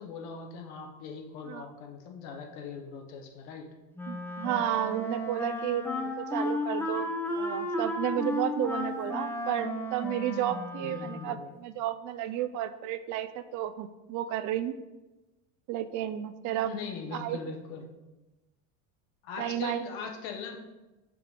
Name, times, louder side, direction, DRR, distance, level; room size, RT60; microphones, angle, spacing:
voice 1, 0.0-3.7 10.8-11.5 16.6-17.8 19.2-20.6, left 5 dB, 65° left, 3 dB, 1.2 m, -40 dB
Wind instrument woodwind instrument, 4.0-11.5, left 1 dB, 5° left, 0.7 m, -34 dB
voice 2, 4.1-14.8 15.7-16.7 17.1-17.4 19.4-19.9, right 11 dB, 50° right, 11 dB, 0.4 m, -32 dB
5.8 x 3.2 x 5.2 m, 1.1 s
hypercardioid pair, 90°, 39 cm